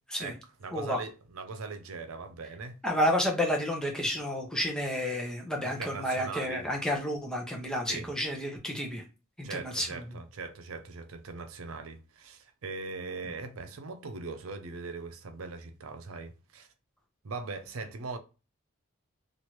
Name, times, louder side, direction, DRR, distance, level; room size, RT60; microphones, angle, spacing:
voice 1, 0.2-2.8 5.6-6.7 7.9-8.1 9.4-16.7 17.2-18.2, right 4 dB, 90° right, 0.6 m, -40 dB
voice 2, 2.8-9.0 9.4-10.0, equal, 5° left, 0.6 m, -30 dB
3.0 x 2.5 x 3.0 m
head